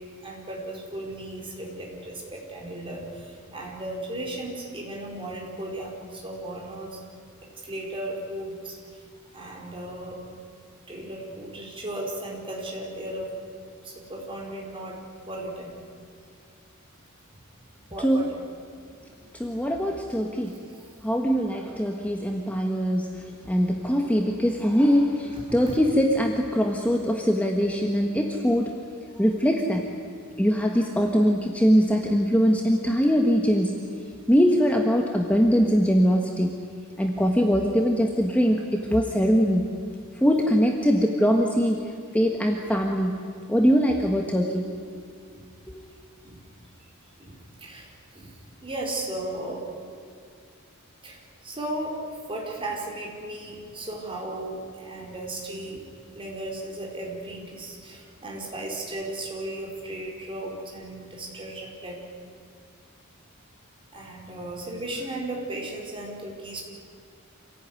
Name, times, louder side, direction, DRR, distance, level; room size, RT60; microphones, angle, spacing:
voice 1, 0.2-7.0 7.6-9.0 9.3-10.2 10.9-13.3 13.8-15.0 15.3-15.7 17.3-17.4 17.9-18.4 19.2-19.3 20.8-20.9 25.7-25.8 45.3-45.5 46.2-46.5 47.2-49.7 51.0-55.8 56.1-62.0 63.9-66.6, right 1 dB, 25° right, -1 dB, 4.7 m, -36 dB
voice 2, 19.3-20.6 21.0-28.7 29.2-29.9 30.4-33.8 34.3-36.6 37.0-39.7 40.2-41.8 42.1-43.2 43.5-44.7, equal, 5° left, 1 dB, 1.4 m, -22 dB
26.5 x 17.0 x 9.7 m, 2.2 s
head